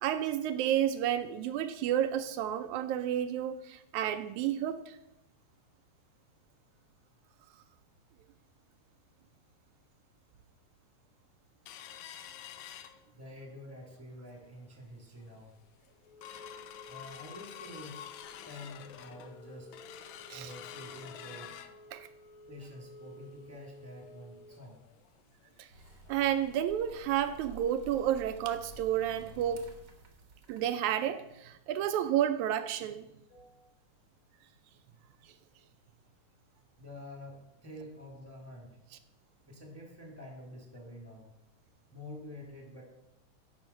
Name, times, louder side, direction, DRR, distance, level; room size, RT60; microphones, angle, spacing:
voice 1, 0.0-5.0 20.3-20.5 21.9-22.1 25.6-25.7 26.1-29.7 30.5-33.1 35.2-35.3, right 10 dB, 80° right, 9 dB, 1.9 m, -31 dB
sound 1, 11.7-13.5 13.9-14.0 14.4-14.7 15.2-15.3 15.6-26.2 26.5-26.6 27.0-27.1 27.7-27.8, left 7 dB, 75° left, 1.8 m, -49 dB
voice 2, 13.1-15.5 16.9-18.1 18.4-19.8 20.3-21.6 22.5-24.8 33.3-33.7 36.8-38.8 39.5-41.3 41.9-42.8, left 1 dB, 5° left, 0 dB, 1.4 m, -48 dB
sound 2, 25.7-31.1, right 3 dB, 55° right, 1.3 m, -53 dB
12.5 x 5.5 x 5.5 m, 0.90 s
omnidirectional pair, 3.4 m